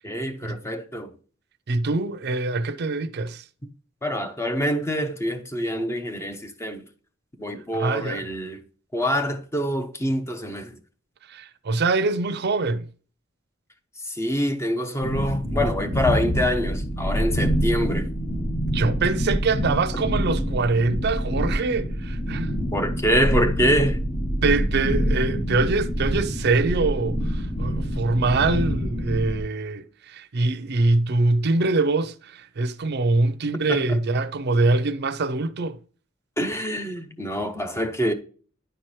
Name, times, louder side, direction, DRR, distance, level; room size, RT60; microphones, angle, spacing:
voice 1, 0.0-1.1 4.0-6.8 7.4-8.6 8.9-10.8 14.0-18.1 22.7-24.0 33.7-34.0 36.4-38.1, equal, 15° left, 0.7 m, -25 dB
voice 2, 1.7-3.4 7.7-8.2 11.3-12.9 18.7-22.5 24.4-35.8, right 3 dB, 55° right, 0.5 m, -24 dB
sound 1, 15.0-29.4, equal, 35° left, 1.0 m, -26 dB
10.0 x 4.5 x 3.1 m
head